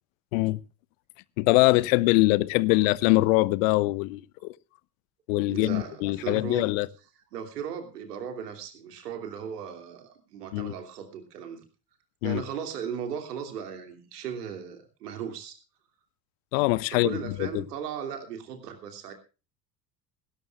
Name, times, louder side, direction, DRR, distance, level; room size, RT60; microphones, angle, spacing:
voice 1, 1.4-4.5 5.3-6.9 10.5-10.7 12.2-12.4 16.5-17.6, left 21 dB, 50° left, 0.8 m, -23 dB
voice 2, 5.5-6.7 7.3-11.6 12.2-15.6 16.9-19.1, right 7 dB, 65° right, 3.0 m, -37 dB
18.5 x 17.5 x 2.4 m
figure-of-eight pair, 65°, 50 cm